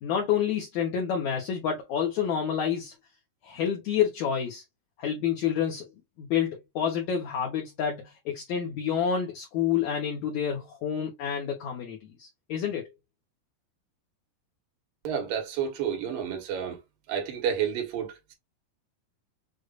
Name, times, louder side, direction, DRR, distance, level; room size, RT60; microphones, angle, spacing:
voice 1, 0.0-2.9 3.4-4.6 5.0-5.9 6.2-12.8, left 8 dB, 65° left, 2.1 m, -28 dB
voice 2, 15.0-16.8 17.1-18.3, right 8 dB, 75° right, 3.0 m, -30 dB
6.7 x 2.5 x 2.5 m
omnidirectional pair, 4.0 m